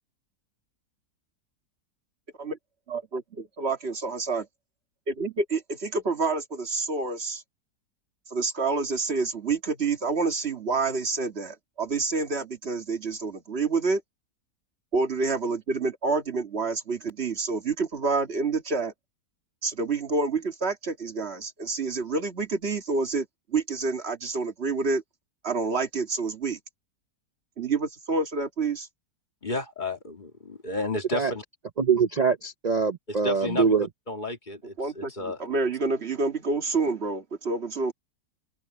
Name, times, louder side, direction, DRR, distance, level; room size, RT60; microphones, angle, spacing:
voice 1, 2.9-4.5 5.1-7.4 8.3-14.0 14.9-18.9 19.6-25.0 25.4-26.6 27.6-28.9 34.8-37.9, right 4 dB, 40° right, 2.0 m, -28 dB
voice 2, 29.4-31.4 33.2-33.7 34.1-35.4, left 2 dB, 30° left, 2.4 m, -32 dB
voice 3, 31.8-33.9, right 5 dB, 75° right, 0.3 m, -23 dB
open air
omnidirectional pair, 1.7 m